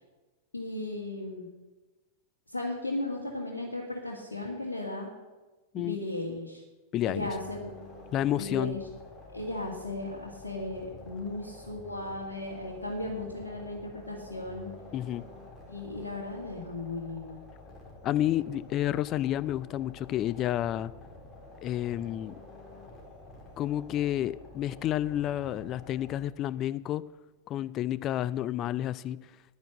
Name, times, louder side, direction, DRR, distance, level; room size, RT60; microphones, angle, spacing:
voice 1, 0.5-1.5 2.5-5.1 5.7-6.6 7.1-7.7 8.3-8.8 9.3-14.7 15.7-17.4, left 2 dB, 75° left, -3 dB, 1.9 m, -36 dB
voice 2, 6.9-7.3 8.1-8.8 14.9-15.2 18.0-20.9 21.6-22.3 23.6-27.0 27.5-29.2, left 12 dB, 35° left, 19 dB, 0.4 m, -30 dB
sound 1, 7.0-26.2, left 2 dB, 15° left, 4.2 m, -49 dB
10.5 x 10.0 x 7.7 m, 1.2 s
figure-of-eight pair, 90°, 0 cm